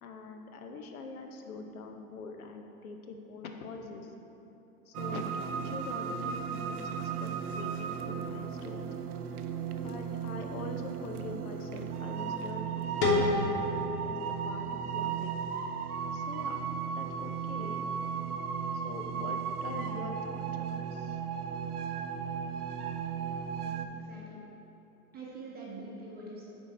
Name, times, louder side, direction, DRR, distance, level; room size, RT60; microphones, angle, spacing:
voice 1, 0.0-4.1 4.9-8.9 9.8-13.6 14.0-15.3 16.1-16.6 16.9-17.8 18.8-21.2, left 4 dB, 70° left, 4 dB, 0.9 m, -44 dB
sound 1, 4.9-23.9, right 7 dB, 80° right, 0.5 m, -35 dB
sound 2, 13.0-15.9, left 3 dB, 45° left, 1.3 m, -31 dB
voice 2, 23.6-24.4 25.1-26.4, right 2 dB, 20° right, -4 dB, 1.1 m, -45 dB
8.0 x 4.5 x 4.2 m, 3.0 s
figure-of-eight pair, 100°, 45 cm